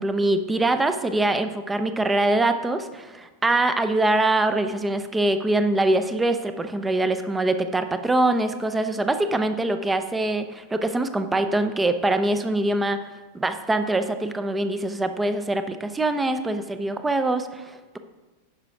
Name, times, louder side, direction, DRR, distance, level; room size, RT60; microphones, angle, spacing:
voice 1, 0.0-13.1 13.3-18.0, right 2 dB, 10° right, 9 dB, 0.7 m, -23 dB
9.9 x 5.9 x 5.0 m, 1.2 s
figure-of-eight pair, 90°, 0 cm